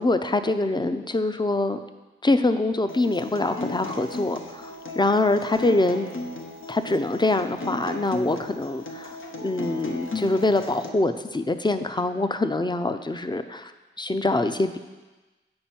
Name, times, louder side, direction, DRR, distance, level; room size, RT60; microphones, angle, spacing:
voice 1, 0.0-1.8 2.2-6.1 6.7-9.2 9.4-13.7 14.0-14.8, left 2 dB, 20° left, 9 dB, 0.5 m, -24 dB
Acoustic guitar, 2.9-10.9, left 2 dB, 75° left, 0.8 m, -36 dB
8.7 x 5.4 x 4.3 m, 1.2 s
cardioid pair, 40°, 21 cm